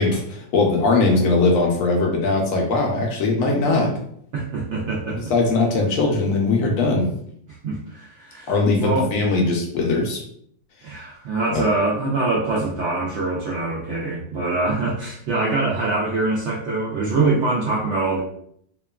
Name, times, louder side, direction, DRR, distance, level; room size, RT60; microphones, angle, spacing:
voice 1, 0.0-3.9 5.3-7.1 8.5-10.2 11.5-11.6, left 3 dB, 70° left, 0 dB, 0.8 m, -20 dB
voice 2, 4.3-5.2 7.6-8.5 8.8-9.1 10.8-18.2, right 3 dB, 85° right, -4 dB, 0.6 m, -24 dB
2.8 x 2.3 x 2.2 m, 0.66 s
omnidirectional pair, 1.8 m